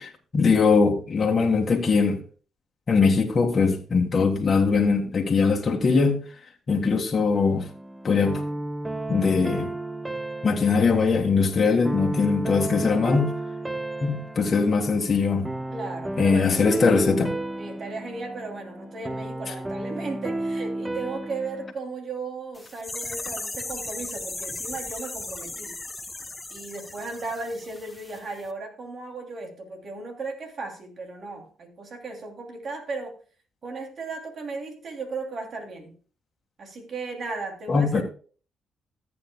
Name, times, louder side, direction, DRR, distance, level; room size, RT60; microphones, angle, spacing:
voice 1, 0.0-2.2 2.9-6.2 6.7-7.7 8.0-8.4 9.1-9.7 10.4-13.3 14.0-15.5 16.2-17.3 37.7-38.0, left 4 dB, 45° left, 1.6 m, -21 dB
sound 1, 7.3-21.7, right 2 dB, 15° right, 0.7 m, -33 dB
voice 2, 15.7-17.0 17.6-25.8 26.5-33.2 33.6-36.0 36.6-38.0, right 3 dB, 55° right, 2.8 m, -36 dB
sound 2, 22.5-28.2 28.4-28.5, left 2 dB, 20° left, 0.9 m, -36 dB
14.5 x 8.5 x 2.3 m
cardioid pair, 80°, 0 cm